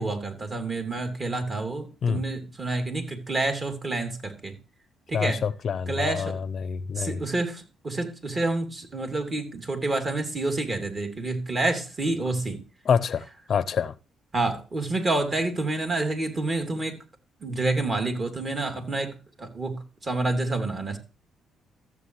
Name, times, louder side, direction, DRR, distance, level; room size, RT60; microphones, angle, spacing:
voice 1, 0.0-4.5 5.1-5.4 5.9-6.4 7.0-12.6 14.3-16.9 17.4-19.1 19.4-21.0, right 2 dB, 35° right, 2.9 m, -28 dB
voice 2, 5.1-7.2 12.8-13.9, left 7 dB, 55° left, 0.6 m, -27 dB
14.5 x 7.7 x 3.2 m
cardioid pair, 90°, 0 cm